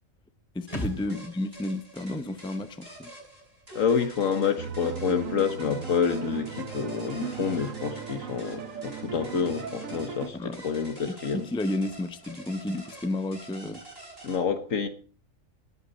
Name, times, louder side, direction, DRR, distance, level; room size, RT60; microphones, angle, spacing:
voice 1, 0.5-3.1 10.3-10.6 11.1-13.8, left 1 dB, 5° left, 0.5 m, -32 dB
sound 1, 0.7-4.2 4.5-4.6, equal, 25° left, 2.5 m, -42 dB
sound 2, 0.7-14.4, right 2 dB, 45° right, 7.2 m, -47 dB
voice 2, 3.7-11.5 14.2-14.9, left 6 dB, 75° left, 1.5 m, -28 dB
sound 3, 4.6-10.3, right 6 dB, 75° right, 1.4 m, -37 dB
19.0 x 8.6 x 4.1 m
omnidirectional pair, 1.4 m